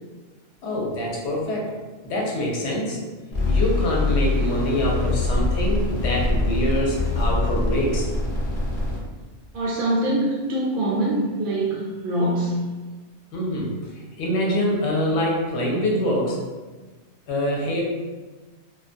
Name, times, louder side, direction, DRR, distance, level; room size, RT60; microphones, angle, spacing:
voice 1, 0.6-1.7 2.0-3.0 3.4-8.1 13.3-16.4 17.3-17.8, equal, 75° left, -2 dB, 0.9 m, -25 dB
sound 1, 3.3-9.0, left 2 dB, 45° left, 0.7 m, -23 dB
voice 2, 9.5-12.6, right 1 dB, 60° right, -6 dB, 0.6 m, -24 dB
2.3 x 2.1 x 2.5 m, 1.3 s
omnidirectional pair, 1.2 m